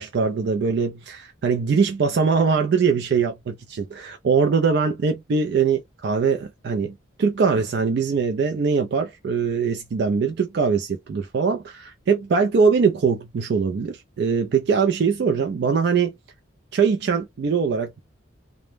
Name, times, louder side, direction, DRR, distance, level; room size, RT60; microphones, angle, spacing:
voice 1, 0.0-16.1 16.7-18.0, right 5 dB, 55° right, 0.3 m, -22 dB
2.0 x 2.0 x 3.1 m
head